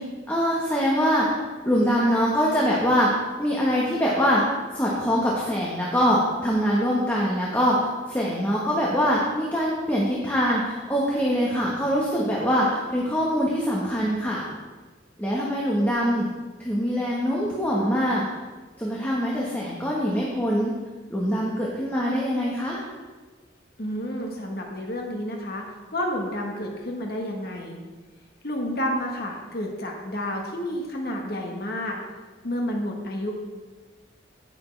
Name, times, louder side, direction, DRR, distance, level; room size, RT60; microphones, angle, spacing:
voice 1, 0.0-1.4 1.6-3.1 3.4-4.4 4.7-14.5 15.2-16.3 16.6-18.2 18.8-20.7 21.1-22.8, equal, 10° left, -5 dB, 1.3 m, -23 dB
voice 2, 23.8-25.6 25.9-27.8 28.4-32.0 32.4-33.3, equal, 55° left, 0 dB, 1.4 m, -30 dB
16.0 x 7.0 x 3.4 m, 1.3 s
head